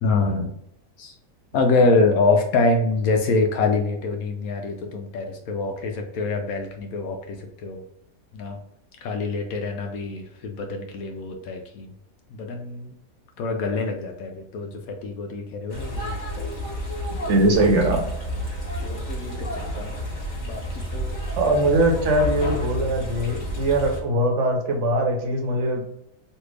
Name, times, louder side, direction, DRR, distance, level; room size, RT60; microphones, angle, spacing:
voice 1, 0.0-0.5 1.0-1.1 1.5-7.8 8.3-8.6 9.0-11.9 12.3-12.9 13.4-16.5 18.8-20.0 20.4-21.2, left 3 dB, 70° left, 3 dB, 0.9 m, -25 dB
sound 1, 15.7-24.0, left 1 dB, 45° left, 1.5 m, -30 dB
voice 2, 17.3-18.1 21.4-25.8, right 1 dB, 60° right, 2 dB, 0.9 m, -21 dB
3.3 x 2.5 x 3.1 m, 0.74 s
omnidirectional pair, 1.8 m